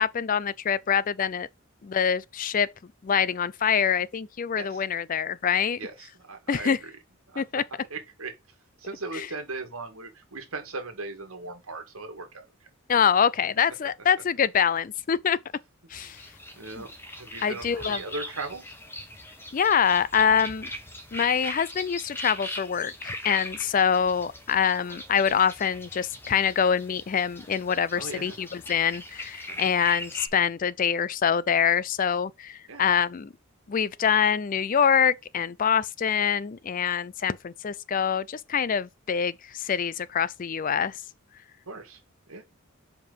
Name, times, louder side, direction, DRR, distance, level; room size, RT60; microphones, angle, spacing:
voice 1, 0.0-1.5 1.8-2.7 3.0-5.8 6.5-6.8 7.4-7.6 12.9-15.4 15.9-16.2 17.4-18.0 19.5-20.7 21.1-33.3 33.7-41.0, left 7 dB, 40° left, 0.4 m, -25 dB
voice 2, 5.8-7.0 7.3-7.4 7.9-8.3 8.8-12.4 16.6-18.7 23.6-23.7 27.9-28.4 29.5-29.7 32.7-32.9 41.7-42.0 42.3-42.4, right 3 dB, 75° right, 2.1 m, -38 dB
sound 1, 15.9-30.3, left 1 dB, 10° left, 1.2 m, -40 dB
5.3 x 4.6 x 5.2 m
head